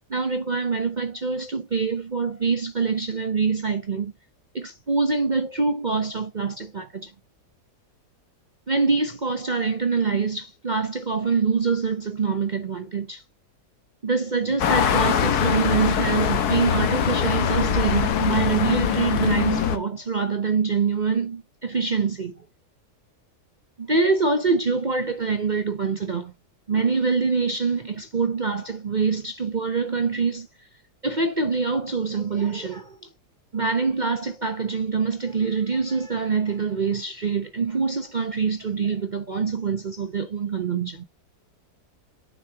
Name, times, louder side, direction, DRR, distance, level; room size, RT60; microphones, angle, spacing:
voice 1, 0.1-4.1 4.5-7.1 8.7-13.2 14.0-22.4 23.8-26.3 26.7-30.5 31.0-33.1 33.5-41.0, right 4 dB, 40° right, 0.7 m, -25 dB
sound 1, 14.6-19.8, left 8 dB, 70° left, 1.5 m, -22 dB
8.7 x 7.2 x 2.9 m
omnidirectional pair, 1.8 m